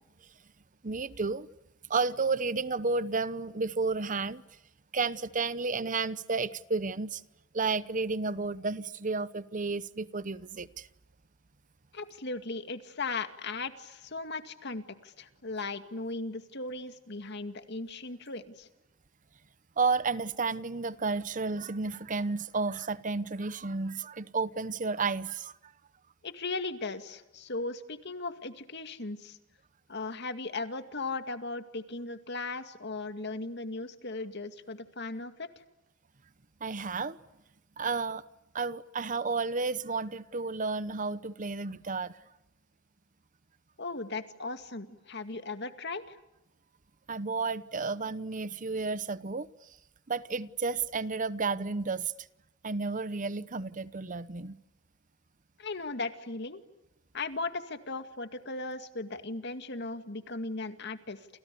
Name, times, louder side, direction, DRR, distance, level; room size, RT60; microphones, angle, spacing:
voice 1, 0.8-1.5 1.9-4.4 4.9-7.2 7.5-10.9 19.8-25.5 36.6-37.2 37.8-38.2 38.5-42.1 47.1-49.5 50.1-52.1 52.6-54.6, right 4 dB, 40° right, 0.9 m, -32 dB
voice 2, 11.9-18.7 26.2-29.4 29.9-35.5 43.8-46.2 55.6-56.6 57.1-61.3, left 3 dB, 60° left, 2.2 m, -37 dB
29.0 x 28.5 x 6.9 m
head